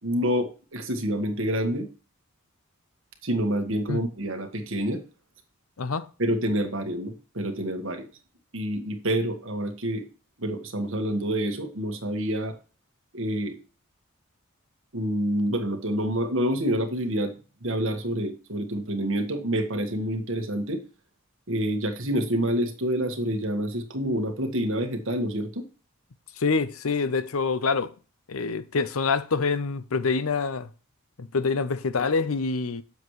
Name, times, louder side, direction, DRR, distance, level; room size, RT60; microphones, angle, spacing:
voice 1, 0.0-1.9 3.2-5.0 6.2-8.1 8.5-10.1 10.4-12.5 13.1-13.6 14.9-20.8 21.5-25.6, right 1 dB, 65° right, 1.6 m, -27 dB
voice 2, 5.8-6.1 26.4-27.9 28.3-30.7 31.2-32.8, left 4 dB, 80° left, 0.7 m, -26 dB
8.1 x 7.2 x 3.2 m
head